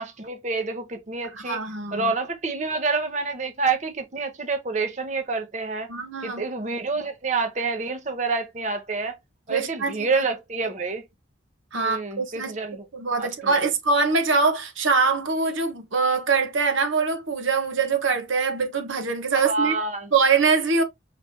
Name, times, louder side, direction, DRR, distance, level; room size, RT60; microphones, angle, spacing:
voice 1, 0.0-1.6 1.9-5.9 6.2-9.2 9.5-11.1 11.7-12.8 13.2-13.7 19.3-20.1, right 4 dB, 35° right, 0.7 m, -28 dB
voice 2, 1.3-2.1 5.9-6.4 9.5-10.3 11.7-12.5 12.9-19.8 20.1-20.8, right 4 dB, 85° right, 1.0 m, -23 dB
4.9 x 3.2 x 2.5 m
head